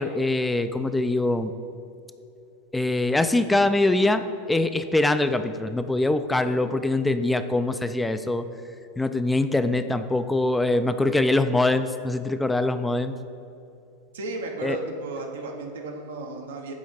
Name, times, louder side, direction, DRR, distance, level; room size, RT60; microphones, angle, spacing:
voice 1, 0.0-1.5 2.7-8.5 9.0-13.2 14.6-14.8, left 2 dB, 10° left, 10 dB, 0.3 m, -23 dB
voice 2, 14.1-16.7, right 2 dB, 85° right, 2 dB, 0.9 m, -34 dB
8.7 x 3.1 x 5.0 m, 2.7 s
hypercardioid pair, 110°, 0 cm